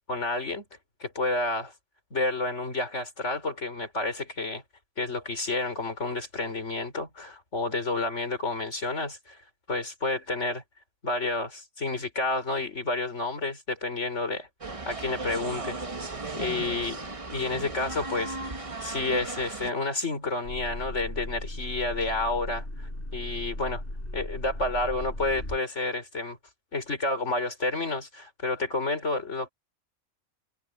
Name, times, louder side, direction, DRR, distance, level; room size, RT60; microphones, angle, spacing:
voice 1, 0.1-0.6 1.0-1.7 2.1-4.6 5.0-9.4 9.7-10.6 11.0-14.5 14.9-17.0 17.3-22.7 23.1-23.8 24.1-26.4 26.7-29.5, left 2 dB, 65° left, 4.5 m, -30 dB
sound 1, 14.6-19.7, right 3 dB, 25° right, 1.3 m, -36 dB
sound 2, 20.4-25.6, left 1 dB, 45° left, 8.1 m, -37 dB
omnidirectional pair, 1.3 m